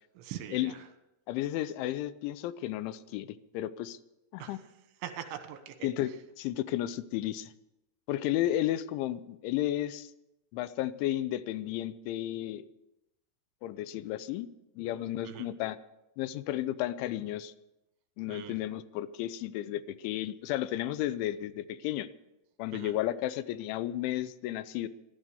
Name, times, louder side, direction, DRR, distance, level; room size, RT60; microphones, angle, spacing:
voice 1, 0.2-0.8 4.4-4.6 5.0-5.8 15.3-15.5 18.3-18.6 22.7-22.9, right 10 dB, 80° right, 8 dB, 3.6 m, -42 dB
voice 2, 1.3-4.0 4.3-4.6 5.8-6.1 6.4-7.5 8.1-10.1 10.5-12.7 13.6-14.5 14.8-15.8 16.2-17.5 18.2-22.1 22.6-24.9, left 13 dB, 85° left, 15 dB, 3.0 m, -33 dB
15.0 x 12.5 x 6.8 m, 0.93 s
omnidirectional pair, 5.4 m